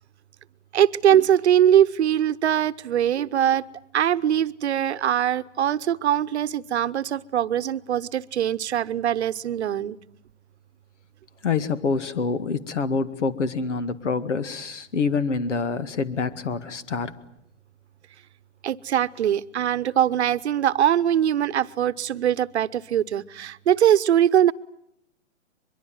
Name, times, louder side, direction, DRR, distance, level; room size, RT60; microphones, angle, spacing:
voice 1, 0.7-3.6 3.9-10.0 18.6-24.5, right 10 dB, 65° right, 15 dB, 1.0 m, -22 dB
voice 2, 11.4-17.1, left 4 dB, 75° left, 14 dB, 2.1 m, -26 dB
23.0 x 23.0 x 9.1 m, 0.76 s
hypercardioid pair, 135°, 36 cm